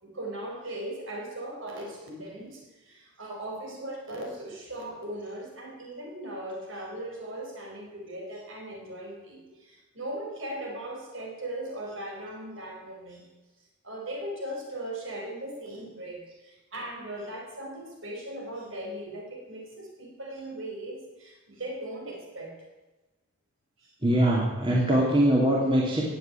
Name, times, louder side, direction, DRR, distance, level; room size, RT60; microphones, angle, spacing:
voice 1, 0.0-13.3 13.8-22.5 23.8-23.9, right 1 dB, 60° right, -1 dB, 5.1 m, -38 dB
voice 2, 24.0-26.0, right 1 dB, 25° right, -3 dB, 2.8 m, -22 dB
17.5 x 8.0 x 9.1 m, 1.1 s
head